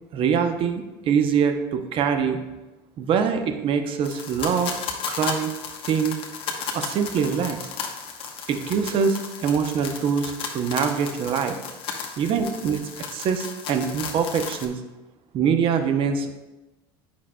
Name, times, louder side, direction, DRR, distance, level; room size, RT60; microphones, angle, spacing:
voice 1, 0.1-2.4 3.0-4.7 5.1-5.5 5.8-6.2 6.7-7.6 8.5-11.6 12.2-12.8 13.1-14.8 15.3-16.3, right 6 dB, 50° right, 7 dB, 0.7 m, -24 dB
sound 1, 4.0-14.7, left 6 dB, 50° left, 1.1 m, -34 dB
8.6 x 5.8 x 2.2 m, 1.1 s
supercardioid pair, 95°, 12 cm